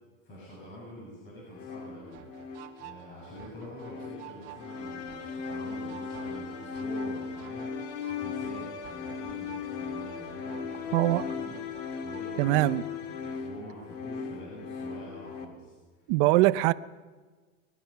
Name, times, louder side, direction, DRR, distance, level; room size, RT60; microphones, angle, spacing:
voice 1, 0.2-2.2 2.5-7.7 8.0-11.6 12.0-15.7, equal, 30° left, -5 dB, 7.2 m, -46 dB
sound 1, 1.5-15.5, left 5 dB, 85° left, 2.3 m, -38 dB
sound 2, 2.1-12.2, right 12 dB, 75° right, 2.0 m, -50 dB
voice 2, 10.9-11.2 12.4-12.8 16.1-16.7, right 18 dB, 50° right, 16 dB, 0.6 m, -22 dB
24.5 x 20.0 x 5.8 m, 1.4 s
supercardioid pair, 170°, 36 cm